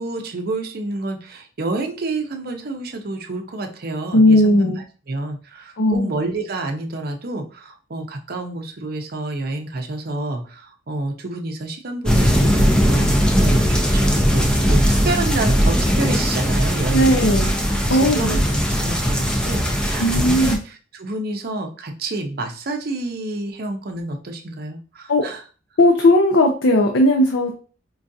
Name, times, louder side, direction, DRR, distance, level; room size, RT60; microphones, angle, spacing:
voice 1, 0.0-4.7 5.1-17.3 17.9-18.4 18.7-25.4, right 2 dB, 55° right, 4 dB, 0.6 m, -28 dB
voice 2, 4.1-4.8 5.8-6.1 16.9-17.5 17.9-18.4 20.0-20.6 25.1-25.2 25.8-27.5, left 1 dB, 90° left, 2 dB, 0.5 m, -16 dB
sound 1, 12.1-20.6, equal, 5° left, 0.4 m, -19 dB
4.5 x 2.4 x 2.6 m, 0.38 s
head